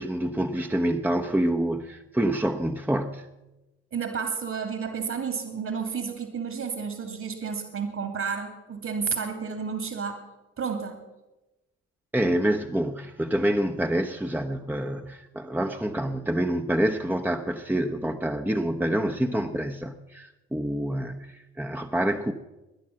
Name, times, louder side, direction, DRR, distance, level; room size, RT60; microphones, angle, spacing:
voice 1, 0.0-3.3 12.1-22.3, right 1 dB, 5° right, 5 dB, 1.1 m, -27 dB
voice 2, 3.9-10.2 10.6-11.0, right 6 dB, 50° right, 6 dB, 2.8 m, -31 dB
21.0 x 10.5 x 5.9 m, 1.0 s
hypercardioid pair, 55°, 35 cm